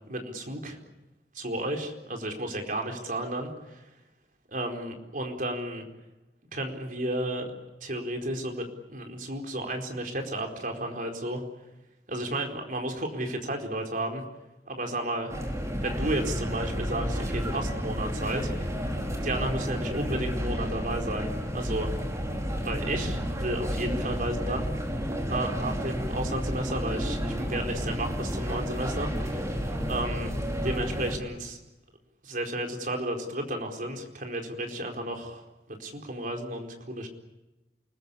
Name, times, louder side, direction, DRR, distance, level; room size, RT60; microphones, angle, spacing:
voice 1, 0.1-0.8 1.3-3.9 4.5-5.8 6.5-7.5 7.8-11.4 12.1-14.2 14.7-15.4 15.8-18.5 19.2-21.3 21.5-21.9 22.6-24.7 25.2-30.3 30.6-31.6 32.2-37.1, right 1 dB, 50° right, 3 dB, 4.5 m, -33 dB
sound 1, 15.3-31.2, equal, 20° right, 5.0 m, -31 dB
29.0 x 20.5 x 8.5 m, 1.1 s
head